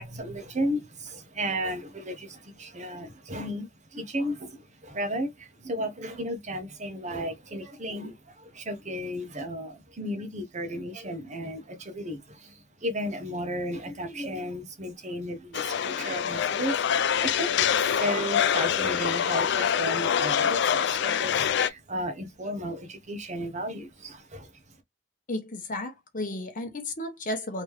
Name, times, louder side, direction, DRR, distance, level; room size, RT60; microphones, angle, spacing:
voice 1, 0.0-24.6, equal, 40° right, 1.0 m, -34 dB
sound 1, 15.5-21.7, left 8 dB, 65° left, 0.4 m, -25 dB
voice 2, 25.3-27.6, left 1 dB, 45° left, 1.1 m, -33 dB
3.5 x 3.0 x 3.1 m
head